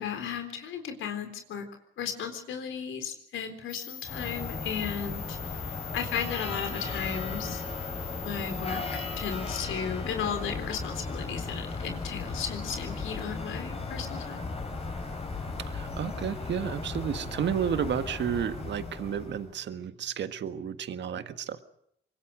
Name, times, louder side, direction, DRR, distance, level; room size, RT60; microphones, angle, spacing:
voice 1, 0.0-1.6 2.0-5.4 5.9-7.6 8.2-14.4, left 7 dB, 80° left, 6 dB, 3.9 m, -35 dB
sound 1, 3.7-9.5, left 11 dB, 55° left, 2.5 m, -43 dB
sound 2, 4.0-19.5, left 3 dB, 30° left, 5.8 m, -36 dB
voice 2, 15.7-21.6, right 8 dB, 65° right, 10 dB, 1.7 m, -32 dB
24.5 x 21.5 x 6.3 m, 0.74 s
cardioid pair, 90°, 20 cm